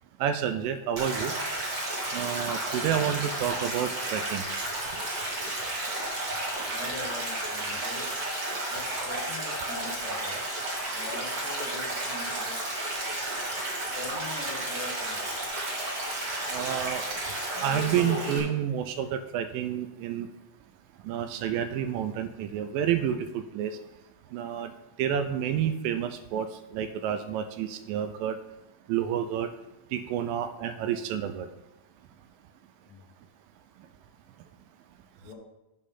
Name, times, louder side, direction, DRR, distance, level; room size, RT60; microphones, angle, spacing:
voice 1, 0.2-1.3 2.1-4.4 16.5-17.0 17.6-20.3 21.0-23.8 24.3-24.7 25.0-26.5 26.7-28.4 28.9-29.5 29.9-31.5, right 9 dB, 80° right, 10 dB, 2.2 m, -29 dB
Stream, 1.0-18.4, right 1 dB, 35° right, 1.6 m, -32 dB
voice 2, 6.7-8.1 8.7-10.4 10.9-12.8 13.9-15.3 32.9-33.0 35.2-35.3, left 2 dB, 45° left, -3 dB, 2.3 m, -42 dB
8.4 x 5.3 x 5.7 m, 0.97 s
omnidirectional pair, 4.1 m